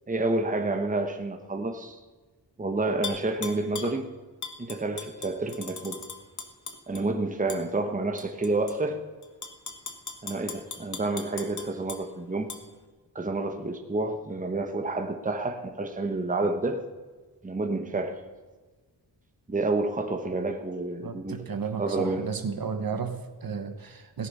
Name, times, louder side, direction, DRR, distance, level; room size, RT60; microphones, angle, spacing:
voice 1, 0.1-2.0 2.6-4.1 4.6-6.0 6.9-9.0 10.2-12.5 13.1-16.9 17.4-18.2 19.5-21.3 21.8-22.3, right 2 dB, 20° right, 5 dB, 1.1 m, -29 dB
Tap / Glass, 3.0-4.0 4.4-7.0 7.5-7.6 8.2-8.7 9.2-12.0 12.5-12.6, left 5 dB, 45° left, 1.3 m, -38 dB
voice 2, 21.0-24.3, right 5 dB, 55° right, 8 dB, 1.2 m, -33 dB
17.0 x 10.5 x 5.5 m, 1.3 s
wide cardioid pair, 155°, 42 cm